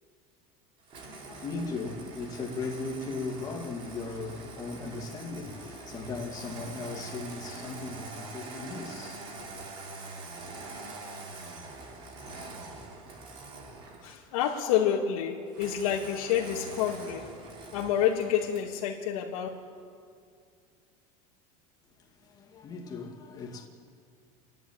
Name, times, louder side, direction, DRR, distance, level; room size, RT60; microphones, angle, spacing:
Engine starting, 0.9-14.3 15.5-18.7, right 3 dB, 30° right, 2.8 m, -44 dB
voice 1, 1.1-9.7 22.0-23.7, left 3 dB, 20° left, 2.2 m, -38 dB
voice 2, 14.0-17.3 17.6-19.5, left 9 dB, 80° left, 1.9 m, -28 dB
29.5 x 11.0 x 8.7 m
cardioid pair, 170°, 18 cm